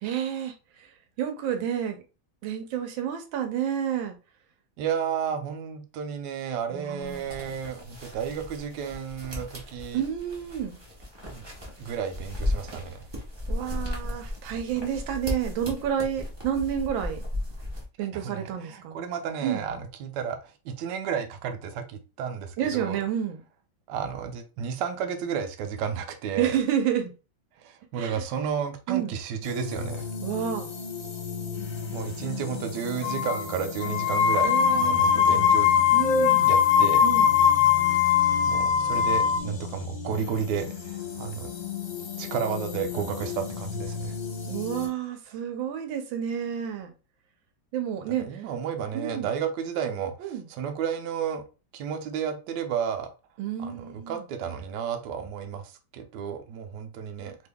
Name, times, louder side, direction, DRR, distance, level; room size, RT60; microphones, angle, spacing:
voice 1, 0.0-0.9 1.2-2.0 2.4-4.2 6.7-7.6 9.9-10.8 13.5-17.2 18.0-19.0 19.4-19.6 22.6-23.4 26.4-27.1 28.0-28.2 28.9-29.1 30.2-30.7 34.4-35.5 35.9-36.5 37.0-37.4 44.5-46.9 47.7-48.4 48.9-49.3 50.2-50.5 53.4-54.2, right 9 dB, 90° right, 1.4 m, -30 dB
voice 2, 4.8-10.0 11.2-11.4 11.8-13.0 18.2-23.0 23.9-26.6 27.6-30.1 31.9-35.7 36.4-37.0 38.5-41.5 42.2-44.1 48.2-51.4 51.7-53.1 53.6-57.4, right 7 dB, 70° right, 1.1 m, -32 dB
sound 1, 7.0-17.8, left 1 dB, 25° right, 0.6 m, -35 dB
sound 2, 29.4-44.9, left 6 dB, 55° left, 1.5 m, -36 dB
sound 3, 33.0-33.4 33.8-39.4, left 8 dB, 90° left, 0.7 m, -21 dB
3.4 x 3.3 x 2.2 m
omnidirectional pair, 2.1 m